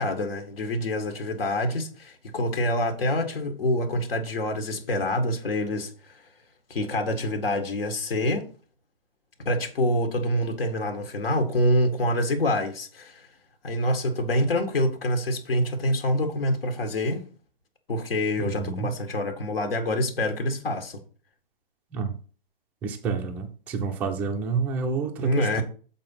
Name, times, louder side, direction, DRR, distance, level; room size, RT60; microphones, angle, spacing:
voice 1, 0.0-6.2 6.7-8.4 9.5-13.3 13.6-17.2 17.9-21.0 25.2-25.6, left 1 dB, 75° left, 1.8 m, -26 dB
voice 2, 18.4-18.9 21.9-22.2 22.8-25.6, right 5 dB, 5° right, 0.3 m, -29 dB
7.6 x 4.4 x 5.5 m
hypercardioid pair, 140°, 29 cm